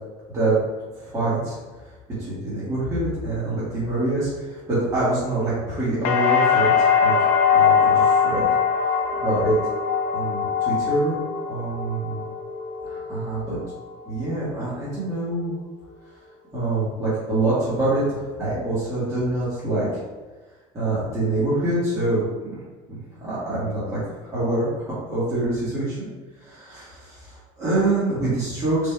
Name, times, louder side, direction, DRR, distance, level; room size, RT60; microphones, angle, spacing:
voice 1, 1.0-1.6 2.2-7.2 7.5-8.5 9.2-9.6 10.1-11.2 11.5-12.2 12.8-13.6 14.0-15.5 16.5-20.0 20.7-22.6 22.9-24.0 24.3-26.1 26.4-28.9, right 2 dB, 20° right, -11 dB, 1.3 m, -25 dB
sound 1, 6.0-14.0 14.3-15.0, left 6 dB, 60° left, 0.6 m, -22 dB
3.6 x 2.6 x 4.2 m, 1.3 s
cardioid pair, 155°, 14 cm